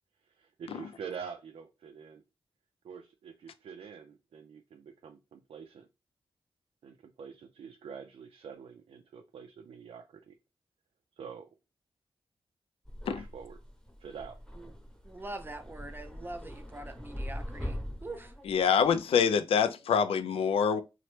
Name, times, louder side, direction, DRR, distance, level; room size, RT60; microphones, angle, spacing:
voice 1, 0.4-2.2 2.8-5.9 6.8-10.3 11.2-11.5 13.1-13.6 14.0-14.4, right 6 dB, 85° right, 0.4 m, -46 dB
sound 1, 12.8-19.0, equal, 5° left, 0.8 m, -42 dB
voice 2, 15.0-18.3, right 2 dB, 20° right, 0.5 m, -43 dB
voice 3, 18.5-20.8, left 7 dB, 90° left, 0.3 m, -25 dB
2.9 x 2.1 x 3.1 m
cardioid pair, 60°, 9 cm